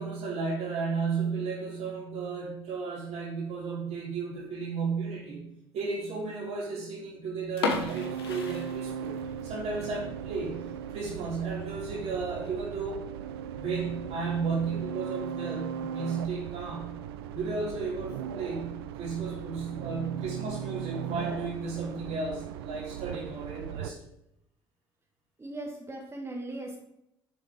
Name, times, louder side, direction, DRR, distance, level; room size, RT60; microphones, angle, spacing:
voice 1, 0.0-5.5 5.7-9.2 9.4-10.6 10.9-13.1 13.5-16.9 17.3-24.0, right 4 dB, 60° right, -4 dB, 3.8 m, -33 dB
sound 1, 7.5-9.4 9.7-9.8 10.4-10.6 11.0-11.1 11.3-11.4 12.2-12.5, left 4 dB, 85° left, 1.3 m, -33 dB
sound 2, 7.7-23.9, right 9 dB, 80° right, 0.4 m, -38 dB
voice 2, 25.4-26.8, right 2 dB, 20° right, -1 dB, 1.7 m, -38 dB
9.2 x 7.0 x 3.7 m, 0.80 s
hypercardioid pair, 55°, 13 cm